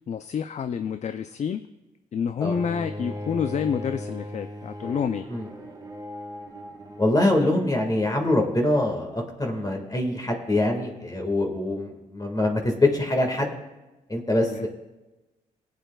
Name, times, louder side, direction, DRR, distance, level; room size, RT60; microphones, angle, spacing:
voice 1, 0.1-1.6 2.1-5.2 14.4-14.7, left 7 dB, 50° left, 10 dB, 0.4 m, -28 dB
Bowed string instrument, 2.5-7.6, left 1 dB, 25° right, 1.5 m, -37 dB
voice 2, 7.0-13.5 14.1-14.7, left 1 dB, 25° left, 2 dB, 1.8 m, -24 dB
19.5 x 8.0 x 2.3 m, 1.1 s
cardioid pair, 65°, 16 cm